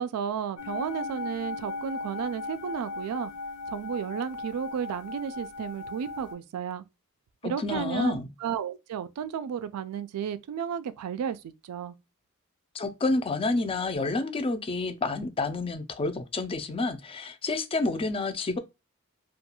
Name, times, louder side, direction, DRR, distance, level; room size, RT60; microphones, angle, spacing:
voice 1, 0.0-3.3 3.7-6.8 7.4-11.9, right 7 dB, 85° right, 0.3 m, -33 dB
sound 1, 0.6-6.3, left 3 dB, 55° left, 0.8 m, -37 dB
voice 2, 7.4-8.3 12.7-18.6, left 3 dB, 25° left, 0.4 m, -29 dB
2.3 x 2.3 x 2.9 m
head